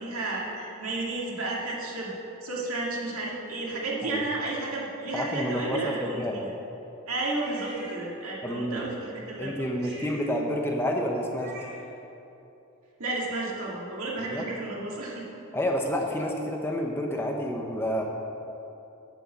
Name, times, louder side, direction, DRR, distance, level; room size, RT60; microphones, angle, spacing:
voice 1, 0.0-2.1 2.4-6.5 7.1-9.8 13.0-15.3, right 2 dB, 90° right, -4 dB, 2.3 m, -32 dB
voice 2, 5.1-6.4 8.4-8.8 9.4-11.5 14.3-14.4 15.5-18.0, equal, 10° left, 0 dB, 0.8 m, -29 dB
sound 1, 5.1-5.7 7.4-8.4 9.7-12.0, right 1 dB, 50° right, 2.1 m, -47 dB
8.2 x 7.6 x 7.5 m, 2.9 s
head